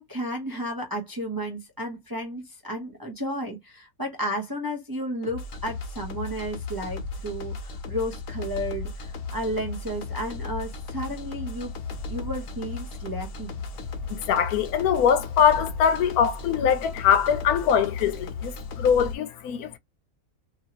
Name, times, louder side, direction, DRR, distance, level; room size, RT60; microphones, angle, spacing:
voice 1, 0.0-11.7 12.1-13.6, equal, 20° right, 0.5 m, -33 dB
sound 1, 5.2-19.1, left 3 dB, 65° left, 1.1 m, -35 dB
voice 2, 14.1-19.8, left 8 dB, 85° left, 1.1 m, -22 dB
2.9 x 2.7 x 2.8 m
omnidirectional pair, 1.5 m